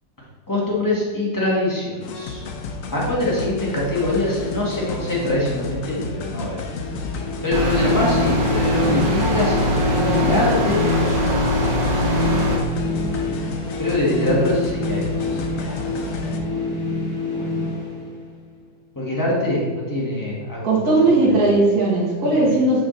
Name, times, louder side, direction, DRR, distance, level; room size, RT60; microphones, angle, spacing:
voice 1, 0.5-2.4 2.9-6.6 7.4-11.4 13.8-15.1 15.6-15.8 18.9-20.8 21.1-21.4 22.2-22.5, left 1 dB, 10° left, -6 dB, 1.6 m, -23 dB
sound 1, 2.0-16.4, left 3 dB, 80° left, 0.7 m, -32 dB
sound 2, 6.7-18.6, left 2 dB, 55° left, 2.0 m, -27 dB
sound 3, 7.5-12.6, equal, 70° right, 1.7 m, -21 dB
voice 2, 20.6-22.8, right 2 dB, 55° right, -6 dB, 1.7 m, -17 dB
6.2 x 5.0 x 3.9 m, 1.4 s
omnidirectional pair, 2.1 m